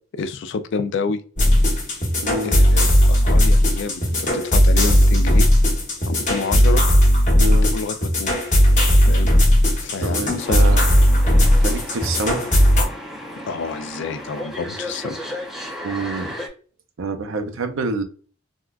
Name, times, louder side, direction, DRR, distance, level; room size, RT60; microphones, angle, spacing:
voice 1, 0.1-1.2 2.4-5.5 6.1-6.8 7.7-8.4 9.0-9.3 9.8-10.6 13.5-15.2, left 4 dB, 60° left, 0.3 m, -28 dB
sound 1, 1.4-12.8, equal, 35° left, 1.1 m, -16 dB
voice 2, 2.2-2.6 7.4-7.7 10.0-10.8 11.4-12.7 15.8-16.3 17.0-18.0, right 3 dB, 75° right, 0.5 m, -27 dB
sound 2, 10.4-16.5, left 1 dB, ahead, 0.6 m, -34 dB
3.6 x 2.2 x 2.3 m
head